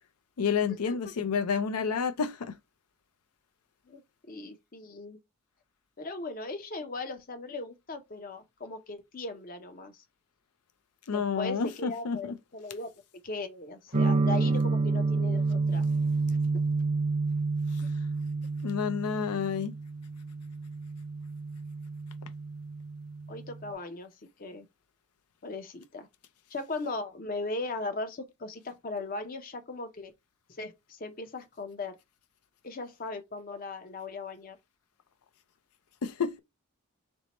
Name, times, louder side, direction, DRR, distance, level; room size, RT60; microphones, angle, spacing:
voice 1, 0.4-2.5 11.1-12.3 18.6-19.7 36.0-36.4, left 6 dB, 85° left, 0.5 m, -29 dB
voice 2, 4.3-5.2 6.0-10.0 11.1-12.9 13.2-15.8 17.8-17.9 23.3-24.7 25.4-26.1 26.5-30.1 30.5-32.0 32.6-34.6, left 3 dB, 40° left, 0.6 m, -38 dB
sound 1, 13.9-23.7, right 3 dB, 30° right, 0.5 m, -29 dB
4.4 x 2.1 x 4.0 m
head